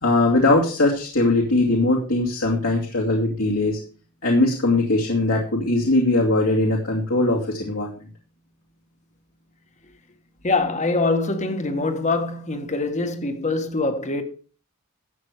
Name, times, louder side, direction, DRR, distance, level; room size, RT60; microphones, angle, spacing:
voice 1, 0.0-3.8 4.2-7.9, left 2 dB, 70° left, 2.4 m, -20 dB
voice 2, 10.4-14.2, left 3 dB, 35° left, 1.5 m, -24 dB
12.5 x 8.0 x 4.9 m
head